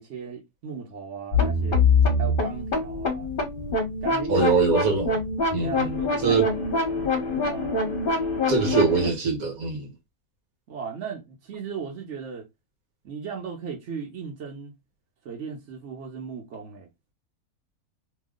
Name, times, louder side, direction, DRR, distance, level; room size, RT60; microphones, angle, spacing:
voice 1, 0.0-1.8 2.2-3.3 4.0-4.6 5.0-5.3 5.6-6.4 7.3-7.8 10.7-12.5 13.0-14.7 15.2-16.9, right 6 dB, 55° right, 1.1 m, -36 dB
sound 1, 1.3-9.1, left 3 dB, 40° left, 1.1 m, -24 dB
voice 2, 4.3-5.2 5.5-6.5 8.5-9.9, right 5 dB, 70° right, 1.6 m, -23 dB
3.1 x 2.3 x 3.6 m
omnidirectional pair, 1.6 m